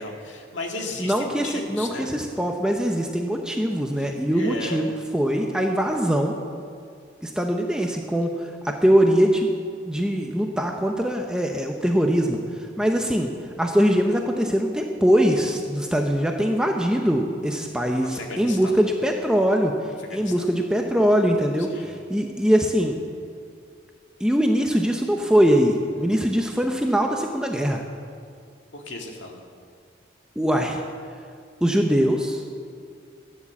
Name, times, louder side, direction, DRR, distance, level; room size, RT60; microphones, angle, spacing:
voice 1, 0.0-2.1 4.0-4.8 18.0-18.8 20.0-20.5 21.7-21.9 28.7-29.4, left 2 dB, 90° left, 1 dB, 2.0 m, -35 dB
voice 2, 1.0-6.3 7.2-9.5 9.8-12.4 12.8-13.3 13.6-19.7 20.1-23.0 24.2-27.8 30.4-30.8 31.6-32.4, equal, 5° right, 2 dB, 0.7 m, -22 dB
14.0 x 9.9 x 7.2 m, 2.2 s
head